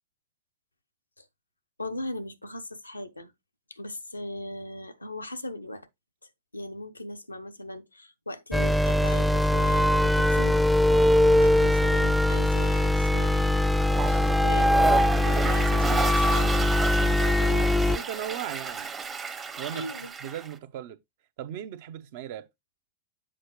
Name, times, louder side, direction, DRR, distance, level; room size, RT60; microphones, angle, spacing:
voice 1, 1.8-3.3 3.7-5.9 6.5-10.6 11.4-13.5 14.1-14.7 15.2-16.7 17.0-18.1 19.7-20.1, left 1 dB, 85° left, 0.7 m, -38 dB
sound 1, 8.5-18.0, left 1 dB, ahead, 0.3 m, -22 dB
Toilet flush, 13.7-20.5, right 5 dB, 20° right, 0.9 m, -32 dB
voice 2, 15.9-16.4 17.9-18.9 19.6-19.9 20.2-21.0 21.4-22.5, right 11 dB, 50° right, 0.8 m, -38 dB
7.6 x 4.8 x 3.1 m
figure-of-eight pair, 90°, 0 cm